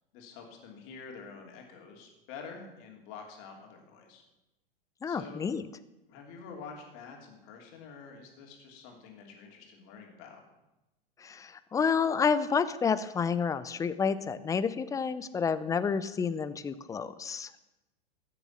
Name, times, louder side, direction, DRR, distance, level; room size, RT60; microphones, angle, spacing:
voice 1, 0.1-4.2 5.1-5.4 6.1-10.4, left 5 dB, 45° left, 2 dB, 3.0 m, -47 dB
voice 2, 5.0-5.6 11.2-17.6, left 6 dB, 10° left, 14 dB, 0.5 m, -29 dB
14.5 x 7.0 x 7.3 m, 0.97 s
figure-of-eight pair, 95°, 30 cm